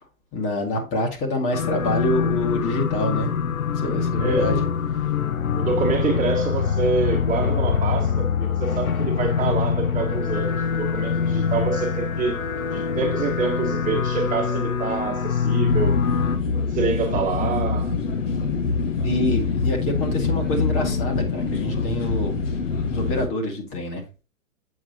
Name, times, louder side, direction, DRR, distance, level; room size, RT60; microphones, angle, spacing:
voice 1, 0.3-3.3 3.8-4.6 4.9-5.0 19.0-22.4 22.9-24.0, left 1 dB, 30° left, 2.1 m, -26 dB
sound 1, 1.5-16.4, left 6 dB, 80° left, 0.9 m, -24 dB
voice 2, 4.2-4.7 5.5-12.4 12.7-16.0 16.7-17.9, right 5 dB, 20° right, 1.8 m, -26 dB
sound 2, 15.7-23.3, left 4 dB, 65° left, 1.6 m, -25 dB
7.6 x 5.9 x 3.0 m
figure-of-eight pair, 110°, 41 cm